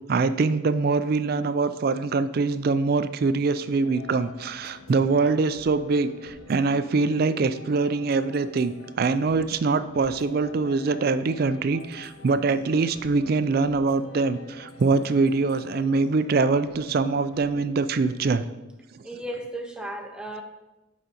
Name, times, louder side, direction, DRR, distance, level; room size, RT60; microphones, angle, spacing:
voice 1, 0.1-18.5 18.9-19.0, right 4 dB, 45° right, 12 dB, 0.3 m, -24 dB
sound 1, 3.8-18.3, left 3 dB, 75° left, 0.8 m, -48 dB
voice 2, 19.0-20.4, right 1 dB, 5° right, 3 dB, 0.6 m, -35 dB
11.0 x 5.1 x 2.9 m, 1.1 s
head